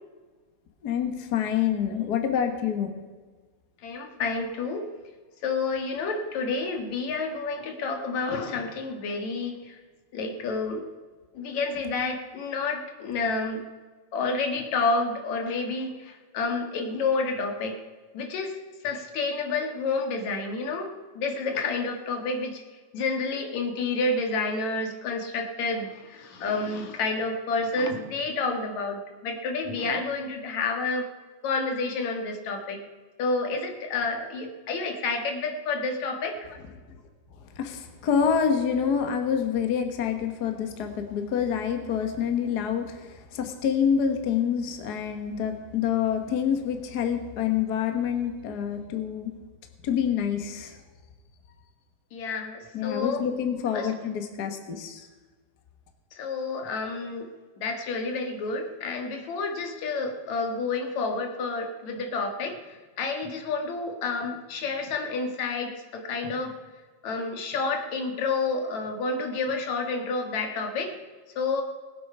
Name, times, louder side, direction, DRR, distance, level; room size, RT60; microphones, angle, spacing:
voice 1, 0.8-2.9 37.6-42.9 43.3-49.3 49.8-50.7 52.7-55.0, left 8 dB, 50° left, 6 dB, 1.3 m, -27 dB
voice 2, 3.8-4.9 5.4-9.8 10.1-10.9 11.3-13.7 14.1-17.8 18.1-18.6 18.8-22.6 22.9-31.1 31.4-32.8 33.2-36.5 52.1-53.3 53.7-54.0 56.1-57.3 57.6-66.5 67.0-70.9 71.4-71.6, left 3 dB, 70° left, 4 dB, 2.9 m, -29 dB
19.5 x 8.2 x 5.5 m, 1.4 s
omnidirectional pair, 3.4 m